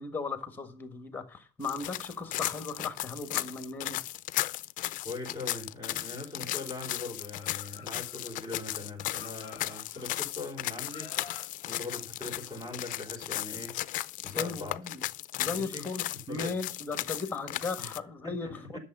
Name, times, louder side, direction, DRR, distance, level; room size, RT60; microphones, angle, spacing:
voice 1, 0.0-4.0 14.4-15.0 15.4-18.8, left 4 dB, 10° left, 1.5 m, -37 dB
sound 1, 1.6-18.0, left 16 dB, 50° left, 0.4 m, -36 dB
voice 2, 5.0-14.8 15.4-16.6 17.1-17.2 17.8-18.0 18.2-18.8, left 2 dB, 25° right, 3.4 m, -41 dB
Laughter, 7.2-8.7 9.0-10.5 10.9-13.1, left 8 dB, 25° left, 1.7 m, -51 dB
11.5 x 7.0 x 5.5 m
cardioid pair, 170°, 18 cm